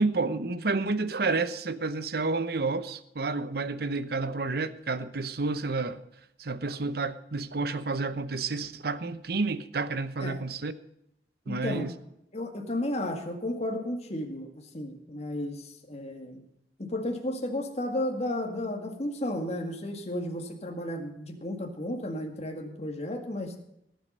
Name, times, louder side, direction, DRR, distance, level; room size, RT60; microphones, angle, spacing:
voice 1, 0.0-6.0 6.4-10.7 11.5-11.9, right 3 dB, 60° right, 0.8 m, -30 dB
voice 2, 11.5-11.8 12.3-16.4 16.8-23.6, left 1 dB, 35° left, 1.9 m, -33 dB
18.0 x 7.8 x 5.5 m
head